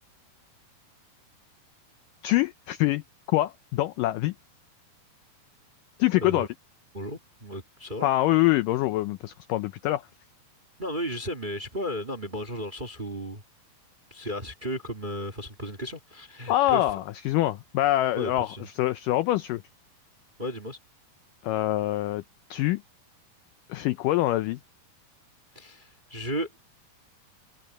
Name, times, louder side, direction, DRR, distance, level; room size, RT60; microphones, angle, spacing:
voice 1, 2.2-3.0 3.3-4.3 6.0-6.5 8.0-10.0 16.5-19.6 21.4-22.2 22.5-22.8 23.7-24.6, left 16 dB, 85° left, 1.9 m, -25 dB
voice 2, 6.9-8.1 10.8-13.4 14.1-16.8 18.2-18.6 20.4-20.8 25.5-26.5, equal, 20° right, 1.4 m, -34 dB
omnidirectional pair, 4.6 m